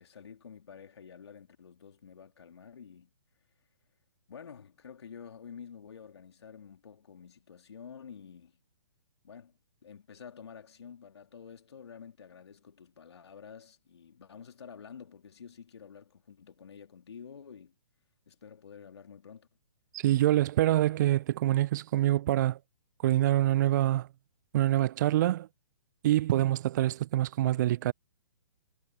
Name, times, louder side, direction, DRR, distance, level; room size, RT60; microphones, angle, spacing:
voice 1, 0.0-3.1 4.3-8.6 9.2-9.5 9.8-17.7 18.3-19.5, left 7 dB, 65° left, 3.2 m, -49 dB
voice 2, 19.9-22.6 23.0-24.1 24.5-25.5 26.0-27.9, right 14 dB, 40° right, 0.5 m, -25 dB
figure-of-eight pair, 130°, 15 cm